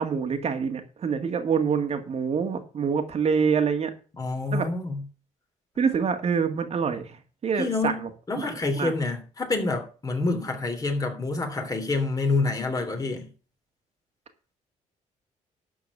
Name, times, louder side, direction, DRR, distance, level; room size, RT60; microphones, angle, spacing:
voice 1, 0.0-3.9 4.5-4.7 5.8-8.1 8.4-8.9, right 6 dB, 50° right, 2.0 m, -26 dB
voice 2, 4.2-5.0 7.6-13.3, left 3 dB, 25° left, 3.0 m, -27 dB
12.0 x 4.7 x 8.3 m
cardioid pair, 105°, 14 cm